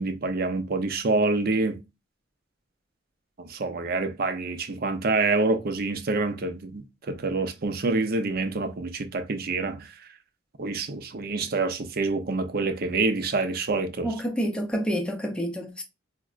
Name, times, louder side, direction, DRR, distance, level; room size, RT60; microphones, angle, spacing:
voice 1, 0.0-1.8 3.4-9.9 10.6-14.1, right 3 dB, 50° right, 0.5 m, -27 dB
voice 2, 14.0-15.8, equal, 5° left, 0.6 m, -28 dB
4.8 x 2.1 x 2.4 m
head